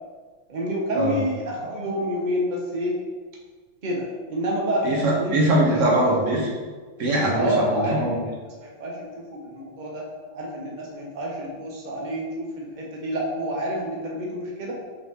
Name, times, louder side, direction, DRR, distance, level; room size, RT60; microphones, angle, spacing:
voice 1, 0.5-3.0 3.8-5.4 5.9-6.0 7.3-8.0 8.6-10.0 10.3-14.7, equal, 80° right, -2 dB, 0.4 m, -28 dB
voice 2, 4.8-6.5 7.0-8.2, right 1 dB, 40° right, -3 dB, 1.4 m, -22 dB
5.8 x 5.7 x 3.0 m, 1.4 s
omnidirectional pair, 2.2 m